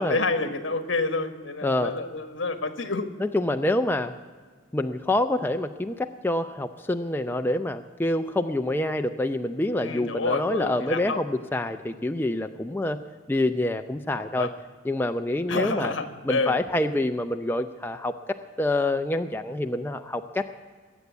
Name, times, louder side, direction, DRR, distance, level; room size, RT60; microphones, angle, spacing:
voice 1, 0.0-3.1 9.8-11.2 14.4-14.5 15.5-16.6, left 3 dB, 70° left, 8 dB, 1.5 m, -28 dB
voice 2, 1.6-2.0 3.2-4.1 4.7-13.0 13.3-14.5 14.8-15.9 16.2-20.5, left 1 dB, 10° left, 6 dB, 0.4 m, -26 dB
21.0 x 8.3 x 8.1 m, 1.5 s
head